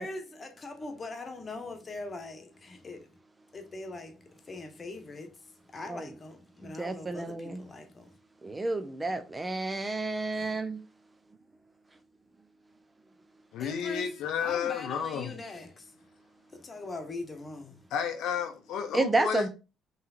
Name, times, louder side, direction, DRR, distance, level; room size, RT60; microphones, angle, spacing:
voice 1, 0.0-3.1 3.5-4.2 4.5-5.3 5.7-8.1 10.3-10.5 13.6-14.1 14.4-15.8 16.6-17.8, left 2 dB, 35° left, 1.2 m, -41 dB
voice 2, 6.6-7.6 8.4-10.8 18.9-19.5, right 2 dB, 20° right, 0.6 m, -30 dB
voice 3, 13.5-15.5 17.9-19.5, left 8 dB, 65° left, 0.6 m, -32 dB
5.5 x 3.2 x 2.6 m
hypercardioid pair, 50°, 0 cm